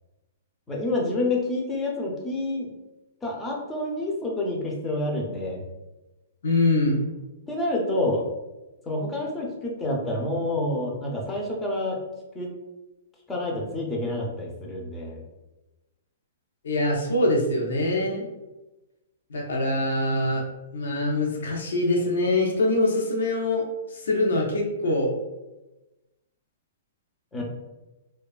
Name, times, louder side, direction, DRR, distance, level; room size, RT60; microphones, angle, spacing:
voice 1, 0.7-2.7 3.2-5.6 7.5-8.2 8.9-12.0 12.3-12.5 13.3-15.2 27.3-27.4, left 1 dB, 10° left, -2 dB, 0.5 m, -28 dB
voice 2, 6.4-7.0 16.6-18.3 19.3-20.4 20.7-23.6 23.9-25.1, left 2 dB, 80° left, -1 dB, 0.6 m, -24 dB
2.6 x 2.2 x 2.3 m, 1.0 s
hypercardioid pair, 150°, 0 cm